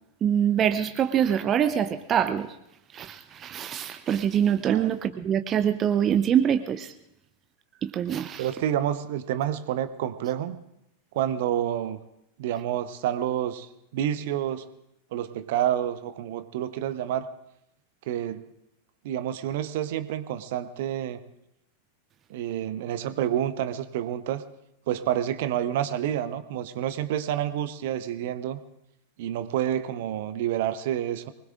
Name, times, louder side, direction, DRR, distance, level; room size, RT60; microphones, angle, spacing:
voice 1, 0.2-2.6 2.9-6.9 7.8-8.5, right 9 dB, 30° right, 9 dB, 0.7 m, -24 dB
voice 2, 8.4-10.6 11.1-12.0 12.4-13.7 13.9-14.7 15.1-17.3 18.1-18.4 19.0-21.2 22.3-24.4 24.9-28.6 29.2-31.3, right 11 dB, 50° right, 12 dB, 0.9 m, -28 dB
24.0 x 20.0 x 2.5 m, 0.84 s
figure-of-eight pair, 90°, 0 cm